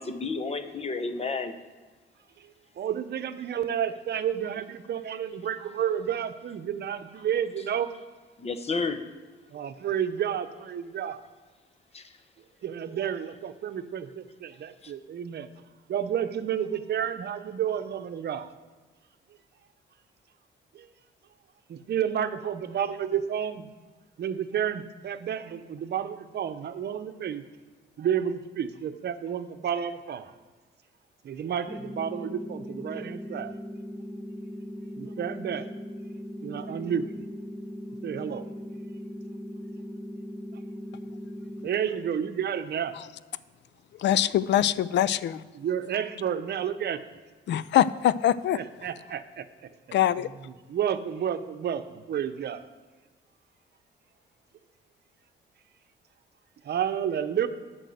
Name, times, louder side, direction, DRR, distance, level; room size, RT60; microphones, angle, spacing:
voice 1, 0.0-1.5 8.4-9.0 11.9-12.0 14.8-14.9, left 4 dB, 30° left, 1.0 m, -31 dB
voice 2, 2.8-7.9 9.5-11.2 12.6-15.5 15.9-18.5 20.7-20.9 21.7-23.7 24.2-27.4 28.0-30.3 31.2-33.5 35.0-35.7 36.4-37.2 38.0-38.5 41.6-42.9 45.5-47.0 48.5-49.4 50.7-52.6 56.6-57.5, right 9 dB, 55° right, 0.8 m, -30 dB
sound 1, 31.7-41.7, equal, 5° left, 1.0 m, -39 dB
voice 3, 44.0-45.4 47.5-48.6 49.9-50.3, left 11 dB, 65° left, 0.4 m, -23 dB
9.0 x 6.2 x 7.9 m
cardioid pair, 90°, 20 cm